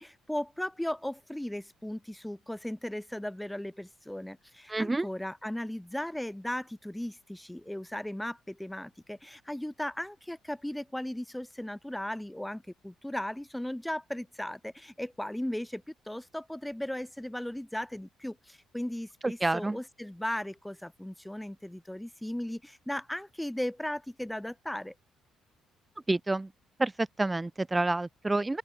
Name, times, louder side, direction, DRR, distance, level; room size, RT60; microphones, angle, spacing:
voice 1, 0.0-24.9, left 1 dB, 5° left, 3.5 m, -37 dB
voice 2, 4.7-5.1 19.2-19.8 26.1-26.5 26.8-28.6, right 2 dB, 15° right, 1.1 m, -28 dB
open air
cardioid pair, 110°, 0 cm